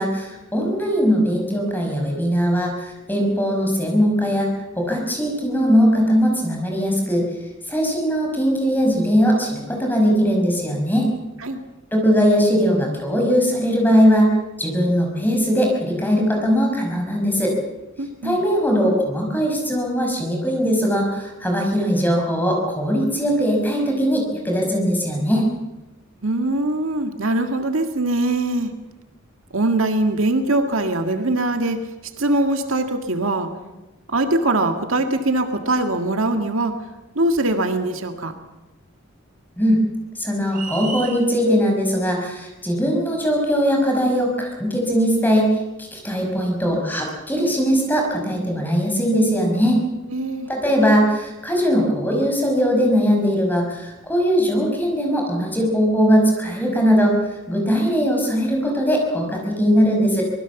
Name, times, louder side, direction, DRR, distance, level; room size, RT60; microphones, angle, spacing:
voice 1, 0.0-4.5 4.8-7.2 7.7-11.1 11.9-14.3 14.6-17.6 18.2-25.5 39.6-39.8 40.2-49.8 50.5-57.2 57.5-60.2, equal, 10° left, 1 dB, 5.4 m, -20 dB
voice 2, 18.0-18.4 26.2-28.7 29.5-31.8 32.2-33.5 34.1-36.8 37.2-38.3 50.1-50.5, right 2 dB, 80° right, 6 dB, 1.9 m, -22 dB
sound 1, 40.5-41.2, right 5 dB, 40° right, 5.6 m, -32 dB
25.0 x 20.0 x 7.1 m, 1.0 s
head